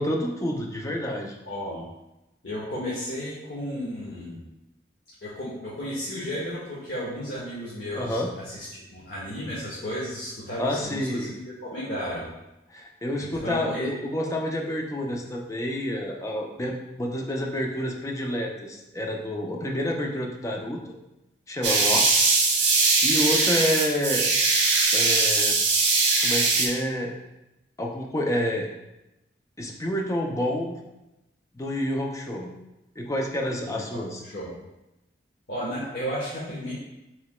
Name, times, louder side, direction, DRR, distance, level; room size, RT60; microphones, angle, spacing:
voice 1, 0.0-1.4 7.9-8.3 10.6-11.3 12.7-20.9 21.5-22.3 22.6-22.8 23.0-24.3 24.9-25.6 26.2-27.2 27.8-28.7 29.6-30.8 31.5-32.5 33.0-34.2, equal, 15° left, 0 dB, 0.4 m, -29 dB
voice 2, 1.5-1.8 2.4-4.4 5.2-12.2 13.2-13.9 33.6-34.5 35.5-36.7, equal, 60° left, -7 dB, 1.0 m, -33 dB
sound 1, 21.6-26.7, right 3 dB, 75° right, 0.9 m, -21 dB
5.9 x 3.3 x 2.2 m, 0.95 s
head